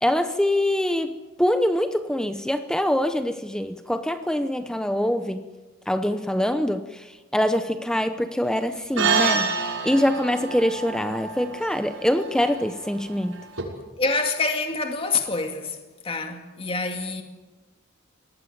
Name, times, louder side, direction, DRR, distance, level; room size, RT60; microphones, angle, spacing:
voice 1, 0.0-1.1 1.4-5.4 5.9-7.1 7.3-13.4, left 1 dB, 5° left, 0.8 m, -24 dB
sound 1, 9.0-13.6, right 5 dB, 70° right, 6.0 m, -28 dB
voice 2, 14.0-15.8 16.0-17.2, left 3 dB, 25° left, 2.2 m, -26 dB
24.0 x 19.0 x 9.6 m
head